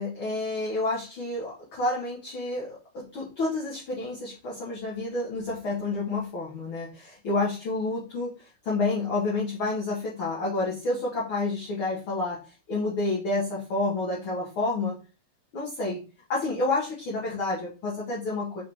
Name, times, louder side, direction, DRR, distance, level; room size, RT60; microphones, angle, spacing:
voice 1, 0.0-15.0 15.5-16.0 16.3-18.6, left 2 dB, 45° left, -5 dB, 2.2 m, -29 dB
6.3 x 6.1 x 3.6 m, 0.33 s
omnidirectional pair, 3.9 m